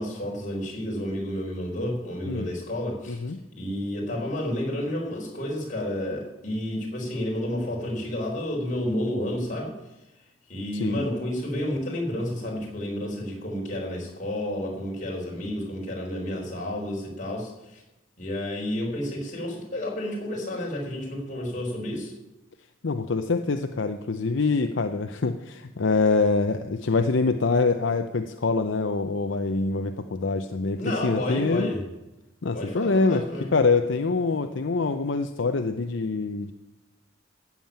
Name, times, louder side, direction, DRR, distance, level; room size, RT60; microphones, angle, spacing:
voice 1, 0.0-3.2 3.5-9.7 10.5-17.8 18.2-22.1 30.8-31.8 32.5-33.5, left 1 dB, 40° left, -1 dB, 4.2 m, -30 dB
voice 2, 3.1-3.4 10.7-11.0 22.8-31.7 32.4-33.2 33.5-36.5, left 3 dB, 70° left, 7 dB, 0.7 m, -25 dB
15.0 x 7.3 x 8.8 m, 0.96 s
head